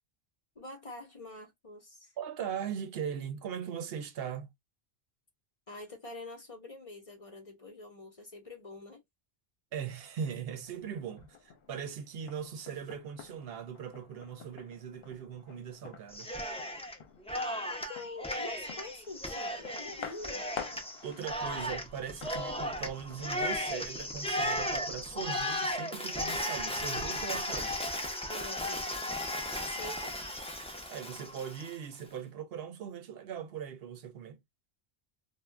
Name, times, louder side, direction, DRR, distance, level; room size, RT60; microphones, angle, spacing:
voice 1, 0.6-2.1 5.7-9.0 17.6-20.5 28.3-28.9 29.6-30.2, left 2 dB, 40° left, 0.7 m, -46 dB
voice 2, 2.2-4.5 9.7-16.3 21.0-27.7 30.9-34.4, right 8 dB, 70° right, 0.8 m, -40 dB
sound 1, 10.6-25.5, left 6 dB, 70° left, 0.9 m, -50 dB
Cheering, 16.1-17.0 17.3-31.7, left 1 dB, 10° left, 0.4 m, -35 dB
2.4 x 2.1 x 3.1 m
omnidirectional pair, 1.1 m